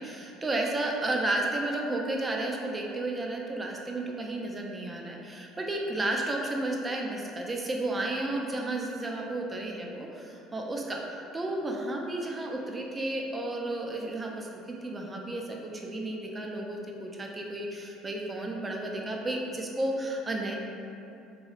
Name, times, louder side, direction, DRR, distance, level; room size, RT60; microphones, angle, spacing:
voice 1, 0.0-11.0 11.3-20.6, right 2 dB, 20° right, 0 dB, 0.4 m, -32 dB
3.0 x 2.9 x 2.4 m, 2.7 s
supercardioid pair, 100°, 0 cm